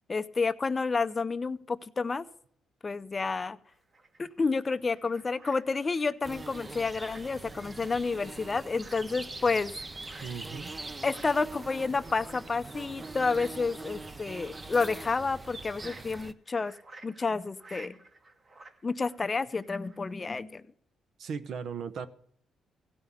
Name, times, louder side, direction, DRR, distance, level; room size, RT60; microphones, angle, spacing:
voice 1, 0.1-2.2 2.8-3.6 4.2-9.7 10.1-10.3 11.0-16.7 17.0-18.0 18.8-20.6, left 4 dB, 30° left, 13 dB, 0.6 m, -30 dB
sound 1, 3.7-20.1, right 2 dB, 40° right, 1.7 m, -55 dB
sound 2, 6.2-16.3, right 3 dB, 25° right, 0.6 m, -43 dB
voice 2, 10.2-10.7 21.2-22.1, right 6 dB, 70° right, 12 dB, 0.9 m, -37 dB
16.5 x 5.6 x 8.3 m, 0.65 s
cardioid pair, 95°, 0 cm